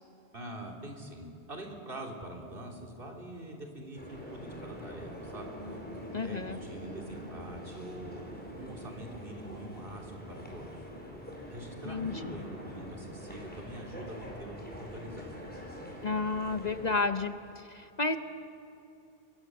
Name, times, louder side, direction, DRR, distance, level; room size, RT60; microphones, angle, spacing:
voice 1, 0.3-10.9 11.5-15.4, right 1 dB, 55° right, 0 dB, 3.6 m, -44 dB
sound 1, 3.9-17.0, equal, 10° left, 5.0 m, -44 dB
voice 2, 6.1-6.6 11.9-12.4 16.0-18.2, left 3 dB, 40° left, 8 dB, 0.9 m, -32 dB
30.0 x 22.5 x 7.7 m, 2.7 s
omnidirectional pair, 1.1 m